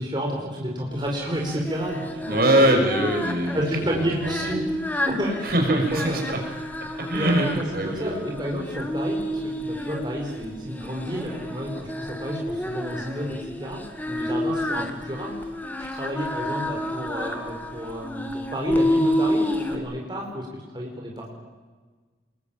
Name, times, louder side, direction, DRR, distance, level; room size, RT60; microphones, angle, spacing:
voice 1, 0.0-2.7 3.5-4.7 4.9-6.3 7.1-15.3 15.9-21.3, equal, 25° right, -1 dB, 4.9 m, -31 dB
Singing, 1.0-19.8, left 1 dB, 10° left, 2.0 m, -30 dB
voice 2, 2.3-4.0 4.2-4.5 5.4-6.4 6.8-8.2, right 1 dB, 55° right, 2 dB, 5.9 m, -23 dB
26.5 x 21.5 x 9.1 m, 1.4 s
head